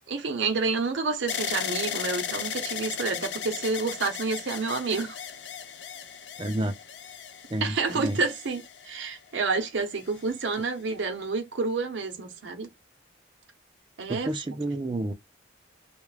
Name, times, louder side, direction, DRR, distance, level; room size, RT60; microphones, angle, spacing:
voice 1, 0.1-5.2 7.6-12.7 14.0-14.3, right 4 dB, 70° right, 0.6 m, -29 dB
sound 1, 1.3-9.3 10.0-10.6, left 8 dB, 60° left, 0.4 m, -36 dB
voice 2, 6.4-6.7 7.5-8.2 14.1-15.1, right 1 dB, 25° right, 0.4 m, -30 dB
2.3 x 2.0 x 3.1 m
head